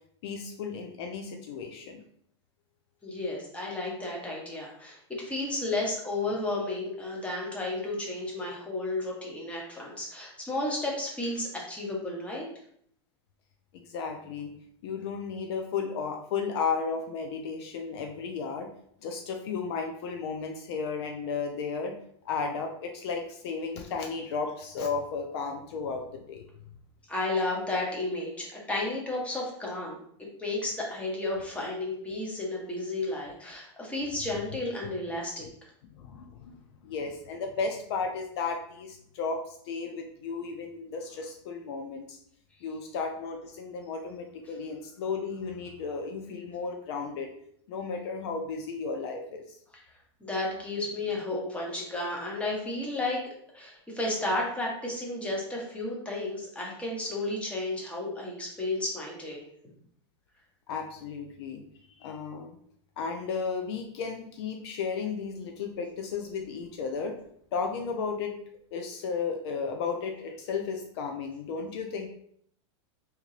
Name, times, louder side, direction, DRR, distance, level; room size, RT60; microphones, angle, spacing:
voice 1, 0.2-2.0 13.7-14.5 14.8-18.7 19.0-22.0 22.2-26.4 36.0-42.2 42.6-47.3 47.7-49.6 60.7-61.6 62.0-62.6 63.0-67.2 67.5-68.3 68.7-72.1, left 5 dB, 60° left, 4 dB, 0.5 m, -34 dB
voice 2, 3.0-12.5 27.1-30.0 30.4-35.5 50.2-53.2 53.5-59.4, left 2 dB, 10° left, -3 dB, 1.0 m, -32 dB
3.4 x 2.8 x 3.2 m, 0.67 s
supercardioid pair, 130°, 15 cm